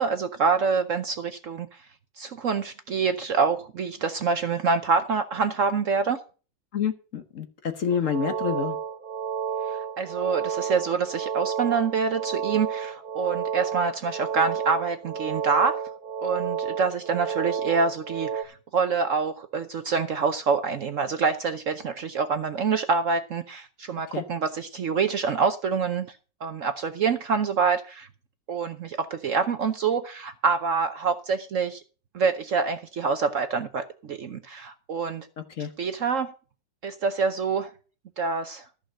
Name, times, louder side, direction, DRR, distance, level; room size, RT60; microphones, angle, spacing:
voice 1, 0.0-1.8 2.2-6.2 9.6-15.8 16.2-26.2 26.4-28.1 28.5-31.8 32.1-35.3 35.8-36.3 36.8-37.7 38.2-38.7, right 5 dB, 55° right, 9 dB, 0.9 m, -26 dB
voice 2, 6.7-8.8 24.1-24.2 35.6-35.7, left 7 dB, 50° left, 8 dB, 1.2 m, -28 dB
sound 1, 7.9-18.4, right 7 dB, 75° right, 0.4 m, -31 dB
14.0 x 5.6 x 6.3 m, 0.37 s
omnidirectional pair, 1.9 m